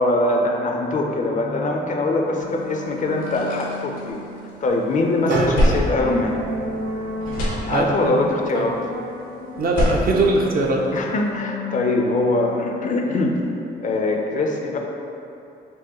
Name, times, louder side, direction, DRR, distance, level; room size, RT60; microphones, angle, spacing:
voice 1, 0.0-4.2 4.6-6.4 7.7-8.7 10.9-13.4 13.8-14.8, left 2 dB, 40° left, 1 dB, 0.4 m, -22 dB
sound 1, 1.2-13.7, left 2 dB, 90° right, 1.3 m, -35 dB
sound 2, 2.6-2.7 3.0-4.7 5.1-6.9 7.2-8.2 9.5-11.2, left 1 dB, 85° left, 0.8 m, -26 dB
voice 2, 5.3-5.8 7.7-8.2 8.5-8.6 9.5-10.8, right 2 dB, 50° right, 0 dB, 0.5 m, -21 dB
Bowed string instrument, 5.3-9.2, right 1 dB, 65° right, 1.0 m, -33 dB
4.6 x 2.1 x 2.9 m, 2.7 s
cardioid pair, 90°, 20 cm